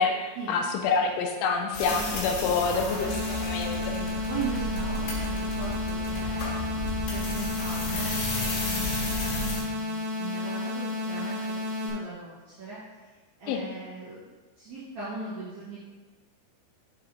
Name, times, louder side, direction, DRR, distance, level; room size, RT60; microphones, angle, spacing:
voice 1, 0.0-3.8 13.5-13.6, left 5 dB, 80° left, 3 dB, 2.9 m, -27 dB
sound 1, 1.7-9.6, left 2 dB, 60° left, 3.5 m, -33 dB
voice 2, 1.8-6.6 7.1-11.6 11.8-15.9, right 4 dB, 80° right, -10 dB, 1.6 m, -40 dB
sound 2, 2.9-11.9, left 2 dB, 50° right, 2.1 m, -32 dB
7.6 x 5.5 x 4.1 m, 1.3 s
omnidirectional pair, 5.9 m